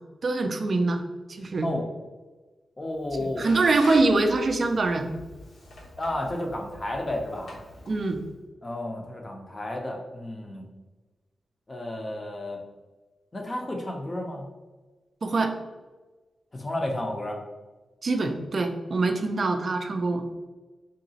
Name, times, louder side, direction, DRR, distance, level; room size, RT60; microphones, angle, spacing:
voice 1, 0.2-1.0 1.3-1.7 3.2-5.1 7.9-8.2 15.2-15.6 18.0-20.3, right 3 dB, 35° right, 6 dB, 0.3 m, -24 dB
voice 2, 2.8-3.5 6.0-7.6 8.6-10.6 11.7-12.6 13.3-14.5 16.5-17.4, left 1 dB, 20° left, 1 dB, 0.5 m, -32 dB
Squeak, 2.9-8.4, left 1 dB, 75° left, 0.9 m, -44 dB
3.8 x 2.9 x 2.7 m, 1.2 s
wide cardioid pair, 175°, 0 cm